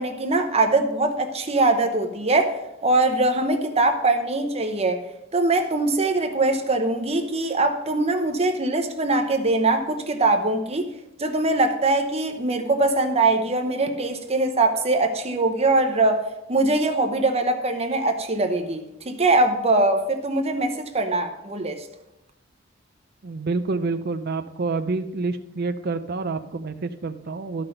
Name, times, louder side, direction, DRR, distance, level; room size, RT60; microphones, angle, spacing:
voice 1, 0.0-5.0 5.3-10.9 11.2-21.9, right 2 dB, 30° right, 5 dB, 0.9 m, -22 dB
voice 2, 23.2-27.7, right 3 dB, 50° right, 8 dB, 0.5 m, -28 dB
13.5 x 5.9 x 5.2 m, 0.91 s
head